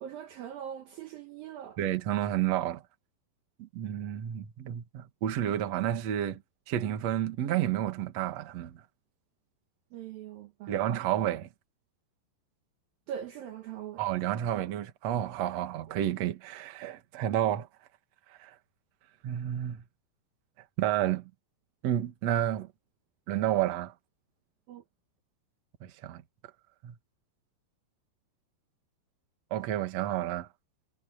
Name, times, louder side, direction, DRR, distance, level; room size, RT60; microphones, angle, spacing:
voice 1, 0.0-1.8 9.9-10.8 13.1-14.0 24.7-24.8, right 9 dB, 70° right, 2.5 m, -41 dB
voice 2, 1.8-2.8 3.6-6.4 6.7-8.8 10.7-11.5 14.0-17.7 18.3-18.6 19.2-19.8 20.8-21.3 21.8-22.7 23.3-23.9 25.8-26.2 26.8-27.0 29.5-30.5, right 11 dB, 55° right, 2.1 m, -30 dB
omnidirectional pair, 5.1 m